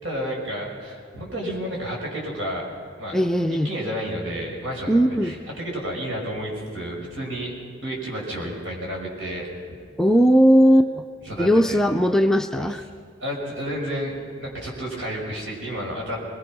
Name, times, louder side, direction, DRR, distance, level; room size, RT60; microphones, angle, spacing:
voice 1, 0.0-2.7 3.0-3.2 3.5-7.5 7.8-9.8 11.2-11.8 12.5-12.7 13.2-16.2, equal, 85° right, -1 dB, 5.9 m, -31 dB
voice 2, 3.1-3.7 4.9-5.4 10.0-11.0 11.4-12.8, equal, 5° left, 6 dB, 0.4 m, -18 dB
22.5 x 21.0 x 6.1 m, 2.3 s
head